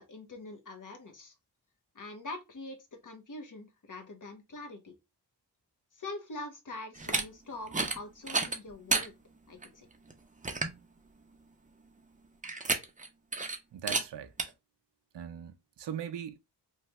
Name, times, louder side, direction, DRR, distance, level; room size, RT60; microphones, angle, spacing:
voice 1, 0.0-1.3 1.9-5.0 5.9-9.1 9.5-9.9, left 2 dB, 50° left, 0.8 m, -44 dB
sound 1, 6.9-7.2 7.7-8.0 8.3-9.1 9.6-9.7 10.1-10.2 10.4-10.8 12.4-13.1 13.3-13.6 13.9-14.0 14.4-14.5, right 3 dB, 20° right, 0.5 m, -30 dB
voice 2, 13.7-14.5 15.1-16.4, right 9 dB, 75° right, 0.5 m, -40 dB
3.2 x 2.2 x 2.9 m
wide cardioid pair, 80°, 42 cm